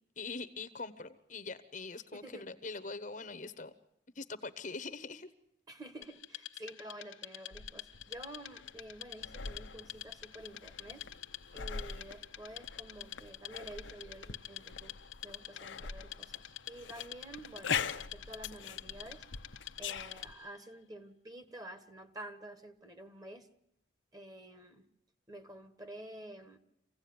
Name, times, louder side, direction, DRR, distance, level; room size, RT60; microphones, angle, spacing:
voice 1, 0.2-3.7 4.1-5.3, left 3 dB, 40° left, 13 dB, 1.0 m, -43 dB
voice 2, 2.1-2.5 5.7-11.0 11.5-15.0 15.2-19.3 19.8-23.5 24.1-24.9 25.3-26.6, right 1 dB, 20° right, 9 dB, 1.6 m, -49 dB
Wood, 6.0-20.6, left 12 dB, 85° left, 1.4 m, -48 dB
sound 1, 7.5-20.3, left 6 dB, 70° left, 0.8 m, -43 dB
25.5 x 16.5 x 9.6 m, 0.80 s
head